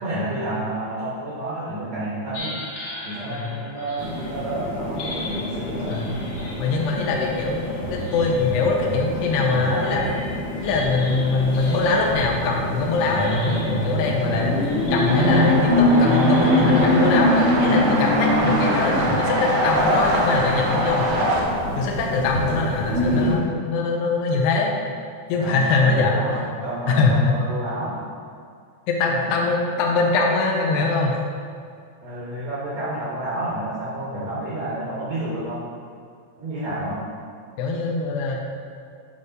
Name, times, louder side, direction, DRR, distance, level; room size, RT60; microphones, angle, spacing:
voice 1, 0.0-2.5 3.0-5.9 9.5-9.9 25.3-28.0 29.2-29.3 32.0-35.6 36.4-37.0, right 1 dB, 90° right, -9 dB, 1.5 m, -30 dB
sound 1, 2.3-17.4, left 2 dB, 70° left, 2.7 m, -40 dB
sound 2, 4.0-23.3, left 1 dB, 45° left, 2.4 m, -24 dB
voice 2, 6.6-7.6 7.9-10.1 10.6-14.5 14.9-21.1 21.8-24.7 25.3-26.2 26.9-27.4 28.9-31.2 37.6-38.4, left 3 dB, 85° left, -1 dB, 2.5 m, -22 dB
sound 3, 15.1-21.4, right 1 dB, 70° right, 3.0 m, -23 dB
8.6 x 4.1 x 5.1 m, 2.3 s
omnidirectional pair, 5.5 m